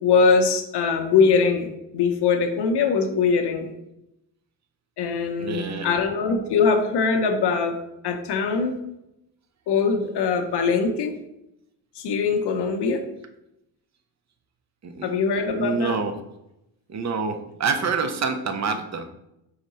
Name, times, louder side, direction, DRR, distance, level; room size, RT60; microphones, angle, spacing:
voice 1, 0.0-3.7 5.0-7.8 8.0-8.8 9.7-11.1 12.0-13.0 15.0-16.0, left 5 dB, 55° left, 5 dB, 0.7 m, -22 dB
voice 2, 5.4-5.9 14.8-15.1 15.5-16.1 16.9-19.1, right 5 dB, 35° right, 7 dB, 0.6 m, -27 dB
4.7 x 2.2 x 4.0 m, 0.85 s
supercardioid pair, 70°, 48 cm